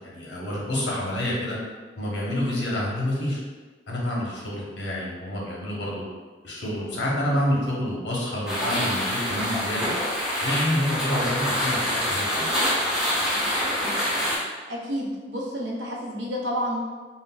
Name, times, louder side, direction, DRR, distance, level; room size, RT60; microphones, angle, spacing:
voice 1, 0.0-1.6 2.0-3.4 3.9-6.0 6.4-9.9 10.4-12.5, left 1 dB, 75° left, -5 dB, 0.8 m, -28 dB
sound 1, 8.5-14.4, equal, 5° right, 0.7 m, -26 dB
voice 2, 14.7-16.8, equal, 85° right, -3 dB, 0.6 m, -30 dB
3.7 x 2.1 x 2.3 m, 1.4 s
head